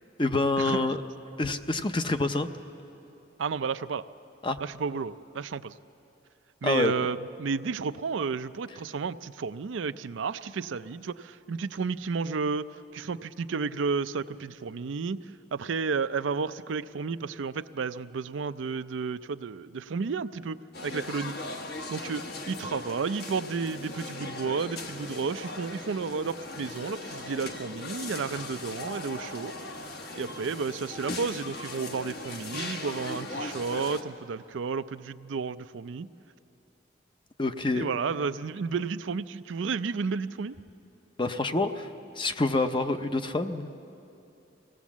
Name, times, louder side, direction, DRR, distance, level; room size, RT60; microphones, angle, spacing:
voice 1, 0.2-1.0 1.4-2.5 4.4-4.6 6.6-6.9 37.4-37.8 41.2-41.9 42.2-43.7, left 2 dB, 25° left, 8 dB, 0.6 m, -27 dB
voice 2, 3.4-4.0 4.6-5.7 6.6-12.7 12.9-15.3 15.5-21.3 21.9-29.5 30.2-36.1 37.7-40.6, right 5 dB, 80° right, 12 dB, 0.5 m, -32 dB
sound 1, 20.7-34.0, left 2 dB, 55° left, 1.3 m, -38 dB
24.0 x 17.5 x 7.3 m, 2.8 s
head